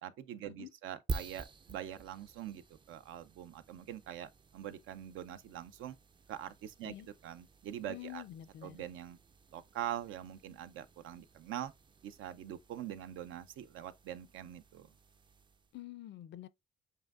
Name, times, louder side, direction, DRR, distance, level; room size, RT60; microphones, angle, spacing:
voice 1, 0.0-2.6 2.9-6.0 6.3-6.9 7.2-8.2 8.6-9.2 9.5-11.7 12.0-14.9, right 11 dB, 85° right, 0.5 m, -43 dB
sound 1, 1.1-15.8, right 4 dB, 25° right, 0.4 m, -49 dB
voice 2, 7.9-8.8 15.7-16.5, left 14 dB, 65° left, 0.4 m, -47 dB
7.4 x 2.6 x 2.4 m
cardioid pair, 90°, 20 cm